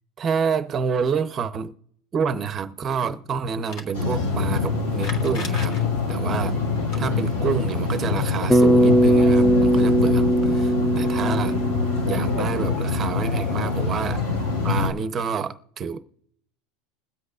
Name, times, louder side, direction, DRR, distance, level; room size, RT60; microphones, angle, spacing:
voice 1, 0.2-1.7 2.1-5.8 6.1-6.6 7.0-11.6 12.0-14.4 14.6-16.0, right 6 dB, 25° right, 0.8 m, -28 dB
sound 1, 3.5-3.9 4.9-5.8 6.7-7.0 9.5-9.6 9.8-9.9 11.0-11.1, left 2 dB, 35° left, 1.9 m, -37 dB
sound 2, 3.9-14.9, left 4 dB, 85° left, 3.1 m, -25 dB
Bass guitar, 8.5-12.9, equal, ahead, 0.3 m, -19 dB
21.5 x 7.9 x 2.5 m
supercardioid pair, 155°, 0 cm